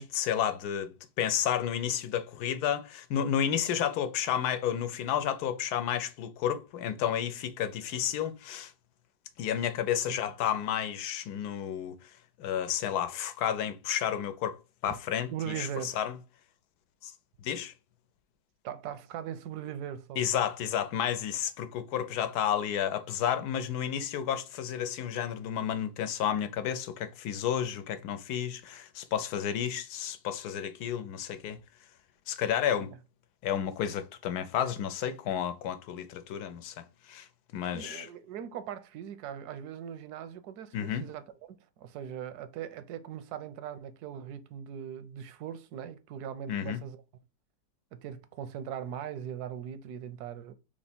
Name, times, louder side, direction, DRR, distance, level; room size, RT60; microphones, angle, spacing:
voice 1, 0.0-8.7 9.4-12.1 12.4-16.2 17.0-17.1 17.4-17.7 20.2-31.6 32.3-32.9 33.4-37.3 37.5-38.1 40.7-41.1 46.5-46.8, left 9 dB, 85° left, 1.2 m, -31 dB
voice 2, 15.3-16.0 18.6-20.2 32.7-32.9 37.7-41.3 41.8-47.0 47.9-50.5, right 9 dB, 85° right, 1.1 m, -40 dB
3.4 x 3.0 x 4.2 m
omnidirectional pair, 1.6 m